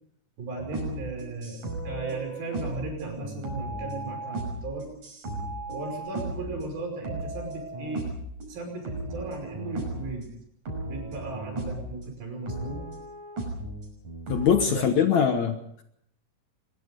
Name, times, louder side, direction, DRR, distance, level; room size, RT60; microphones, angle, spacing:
voice 1, 0.4-1.6 1.8-4.9 5.7-8.0 8.5-10.3 10.8-12.8 14.6-15.3, right 2 dB, 75° right, 3 dB, 7.2 m, -36 dB
sound 1, 0.6-6.7 7.0-8.5 8.8-10.1 10.7-11.9 12.5-14.6, right 2 dB, 55° right, 7.1 m, -35 dB
voice 2, 14.3-15.8, left 7 dB, 60° left, 7 dB, 2.1 m, -23 dB
23.5 x 21.5 x 5.3 m, 0.72 s
omnidirectional pair, 4.4 m